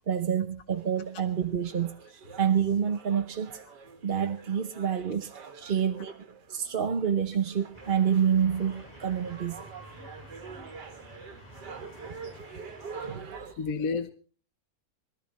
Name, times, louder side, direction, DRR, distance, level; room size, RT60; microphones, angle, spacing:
voice 1, 0.1-3.5 4.0-6.1 6.5-9.6 13.0-13.6, right 8 dB, 40° right, 6 dB, 0.9 m, -28 dB
sound 1, 0.7-13.5, right 5 dB, 80° right, 1.9 m, -46 dB
sound 2, 7.7-13.2, equal, 15° left, 6.9 m, -50 dB
voice 2, 13.6-14.1, left 4 dB, 55° left, 10 dB, 1.4 m, -32 dB
23.0 x 14.0 x 4.1 m, 0.42 s
omnidirectional pair, 1.8 m